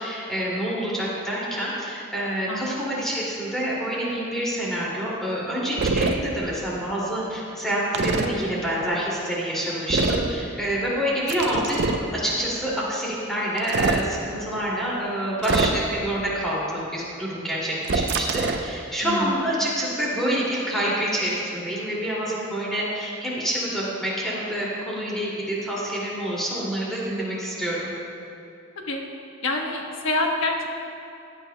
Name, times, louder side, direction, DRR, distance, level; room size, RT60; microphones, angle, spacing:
voice 1, 0.0-11.8 12.1-27.8, equal, ahead, -7 dB, 2.4 m, -27 dB
voice 2, 2.5-3.0 19.0-19.4 28.8-29.0 29.4-30.7, left 2 dB, 65° left, 1 dB, 1.2 m, -27 dB
sound 1, 5.8-6.1 7.9-8.3 9.9-10.3 11.3-12.1 13.6-14.0 15.4-16.0 17.8-18.7, right 3 dB, 55° right, 0.6 m, -24 dB
15.5 x 9.7 x 2.2 m, 2.7 s
head